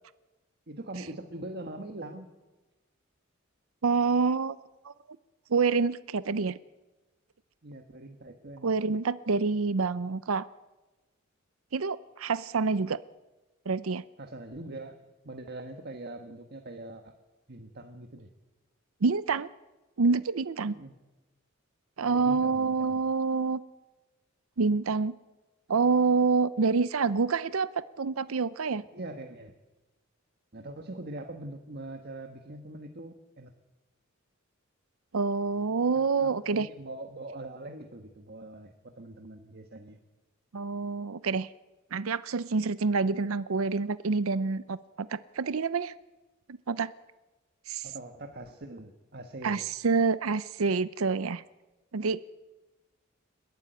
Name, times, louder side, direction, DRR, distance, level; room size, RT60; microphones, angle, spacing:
voice 1, 0.7-2.3 7.6-8.7 14.2-14.9 15.2-17.1 17.5-18.3 20.7-20.9 22.0-23.0 28.9-29.5 30.5-33.5 35.9-40.0 47.8-49.6, right 2 dB, 50° right, 5 dB, 1.5 m, -42 dB
voice 2, 3.8-4.6 4.8-4.9 5.5-6.6 8.6-10.4 11.7-13.0 13.7-14.0 19.0-19.5 20.0-20.8 22.0-23.6 24.6-25.2 25.7-28.8 35.1-36.7 40.5-41.5 41.9-45.9 46.7-46.9 47.7-47.9 49.4-51.4 51.9-52.2, right 4 dB, 90° right, 15 dB, 0.6 m, -27 dB
29.5 x 12.5 x 9.2 m, 1.2 s
head